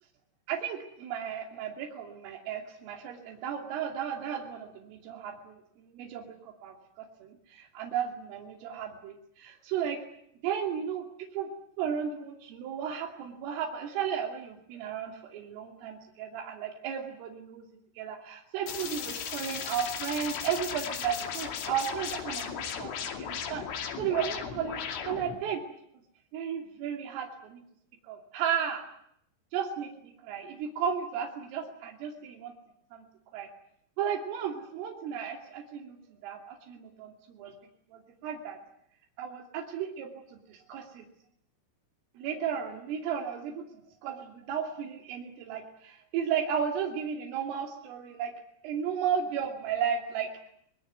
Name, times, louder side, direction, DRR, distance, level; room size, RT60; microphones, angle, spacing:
voice 1, 0.5-10.0 10.4-11.1 11.3-11.5 11.8-17.7 18.0-25.6 26.3-27.6 28.0-28.8 29.5-29.9 30.2-32.5 32.9-33.0 33.3-33.5 34.0-37.5 37.9-38.6 39.2-41.1 42.2-48.3 48.6-50.3, right 8 dB, 80° right, 2 dB, 5.3 m, -34 dB
sound 1, 18.7-25.4, left 7 dB, 75° left, 5.1 m, -36 dB
25.0 x 21.5 x 9.6 m, 0.71 s
omnidirectional pair, 5.7 m